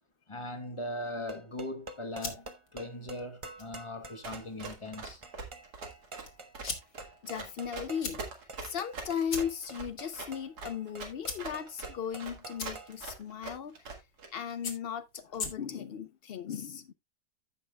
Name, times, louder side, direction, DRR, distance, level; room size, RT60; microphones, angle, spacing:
voice 1, 0.3-5.2, left 1 dB, 20° left, 1.0 m, -39 dB
sound 1, 1.0-13.0, right 2 dB, 25° right, 0.8 m, -48 dB
sound 2, 1.8-16.0, left 4 dB, 60° left, 2.0 m, -45 dB
Run, 4.2-14.3, right 3 dB, 75° right, 2.3 m, -43 dB
voice 2, 7.2-8.2 8.6-13.8 14.3-16.9, left 8 dB, 90° left, 0.5 m, -37 dB
15.0 x 5.6 x 2.3 m
omnidirectional pair, 1.7 m